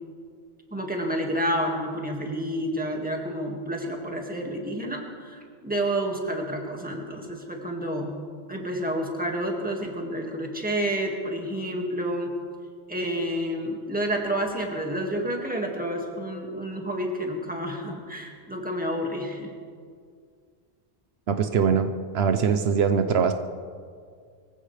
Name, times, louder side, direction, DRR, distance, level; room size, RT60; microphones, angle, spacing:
voice 1, 0.7-8.1 8.5-12.3 12.9-19.5, right 1 dB, 10° right, 0 dB, 1.9 m, -29 dB
voice 2, 21.3-23.3, right 6 dB, 75° right, 8 dB, 1.0 m, -22 dB
23.5 x 15.0 x 3.3 m, 2.1 s
omnidirectional pair, 1.1 m